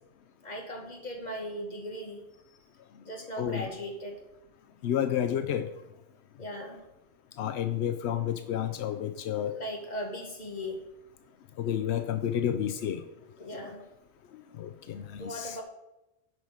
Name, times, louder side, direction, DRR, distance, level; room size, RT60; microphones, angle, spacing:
voice 1, 0.4-2.2 3.0-4.2 6.4-6.8 9.4-10.8 13.4-13.8 15.2-15.6, equal, 40° left, 1 dB, 1.7 m, -38 dB
voice 2, 4.8-5.7 7.4-9.5 11.6-13.0 14.6-15.5, left 9 dB, 85° left, 8 dB, 0.9 m, -30 dB
8.0 x 5.4 x 6.4 m, 0.92 s
omnidirectional pair, 1.1 m